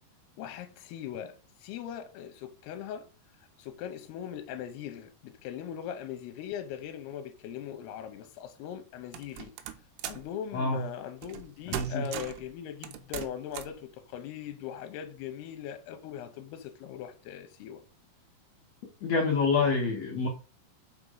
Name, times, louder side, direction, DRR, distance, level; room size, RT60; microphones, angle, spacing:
voice 1, 0.4-3.1 3.6-9.5 10.1-17.8, left 9 dB, 90° left, 2.7 m, -40 dB
sound 1, 9.1-10.3 11.2-11.5 11.7-12.5 12.8-13.8, right 11 dB, 90° right, 2.9 m, -38 dB
voice 2, 10.5-10.8 11.7-12.1 19.0-20.3, left 4 dB, 75° left, 1.6 m, -27 dB
5.7 x 4.9 x 5.3 m
omnidirectional pair, 4.7 m